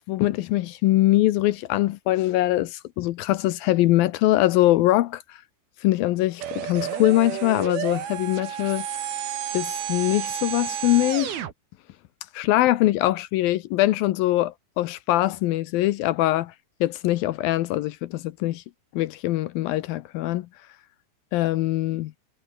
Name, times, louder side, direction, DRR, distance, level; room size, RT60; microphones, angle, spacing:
voice 1, 0.1-5.4 5.8-8.9 9.5-11.4 12.3-16.5 16.8-18.6 18.9-20.5 21.3-22.1, left 16 dB, 80° left, 2.1 m, -22 dB
sound 1, 6.4-11.5, right 10 dB, 65° right, 3.8 m, -31 dB
omnidirectional pair, 5.1 m